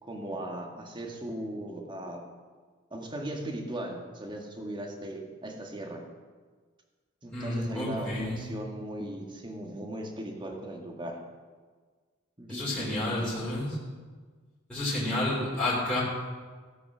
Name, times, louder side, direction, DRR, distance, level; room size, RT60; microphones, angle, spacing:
voice 1, 0.0-2.2 2.9-6.0 7.2-11.2 12.4-13.3, right 1 dB, 25° right, 2 dB, 1.7 m, -38 dB
voice 2, 7.3-8.5 12.5-13.8 14.7-16.0, left 1 dB, 5° left, -10 dB, 3.4 m, -30 dB
16.0 x 8.7 x 6.1 m, 1.5 s
head